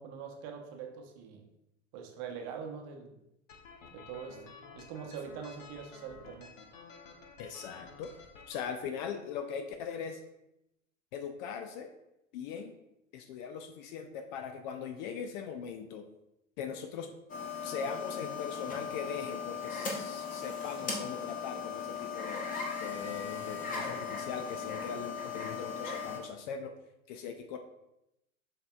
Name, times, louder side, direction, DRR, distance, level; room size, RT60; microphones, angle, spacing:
voice 1, 0.0-1.4 1.9-3.2 3.9-6.5, right 6 dB, 45° right, 3 dB, 0.8 m, -43 dB
sound 1, 3.5-8.6, left 5 dB, 70° left, 0.8 m, -52 dB
voice 2, 7.4-8.2 8.5-10.2 11.1-11.9 12.3-12.7 13.1-16.1 16.6-17.1 17.6-26.7 27.1-27.6, left 6 dB, 40° left, 7 dB, 0.4 m, -40 dB
sound 2, 17.3-26.2, left 5 dB, 20° left, 0.8 m, -38 dB
7.2 x 2.8 x 2.3 m, 0.86 s
figure-of-eight pair, 90°, 39 cm